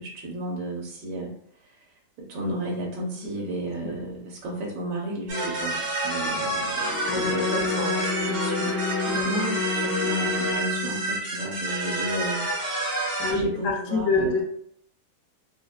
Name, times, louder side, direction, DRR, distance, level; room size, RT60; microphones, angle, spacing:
voice 1, 0.0-1.9 2.2-12.4 12.9-13.0 13.3-14.4, right 1 dB, 85° right, -2 dB, 1.4 m, -33 dB
sound 1, 5.3-13.3, right 1 dB, 50° right, 1.2 m, -28 dB
Wind instrument woodwind instrument, 7.0-11.2, left 6 dB, 85° left, 1.9 m, -30 dB
voice 2, 7.0-7.9 9.1-9.3 13.2-14.4, left 3 dB, 65° left, 0 dB, 0.8 m, -26 dB
3.9 x 2.1 x 2.3 m, 0.68 s
omnidirectional pair, 1.9 m